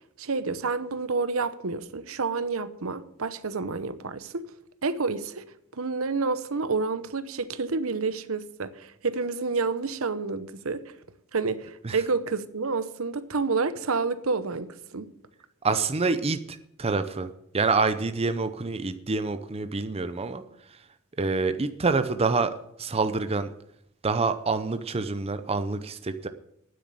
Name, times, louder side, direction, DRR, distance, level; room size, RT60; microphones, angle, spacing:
voice 1, 0.2-4.5 4.8-5.4 5.7-10.9 11.3-15.1, right 4 dB, 70° right, 0.9 m, -29 dB
voice 2, 15.6-20.8 21.2-23.5 24.0-26.3, right 4 dB, 30° right, 0.6 m, -27 dB
9.5 x 8.1 x 9.6 m
head